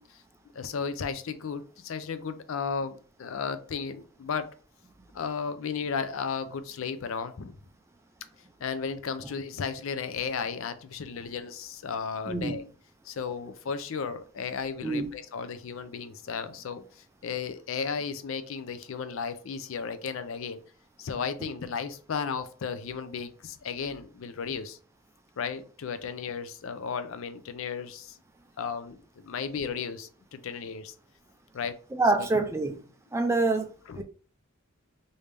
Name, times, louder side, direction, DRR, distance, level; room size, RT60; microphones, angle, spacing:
voice 1, 0.5-4.5 5.1-7.5 8.6-12.6 13.0-20.6 21.0-24.8 25.4-28.2 28.6-30.9 31.5-31.8 32.2-32.3 33.9-34.0, left 6 dB, 70° left, 0.4 m, -34 dB
voice 2, 12.3-12.6 14.8-15.1 32.0-32.8 33.1-34.0, right 3 dB, 15° right, 0.3 m, -26 dB
3.2 x 2.7 x 3.3 m
head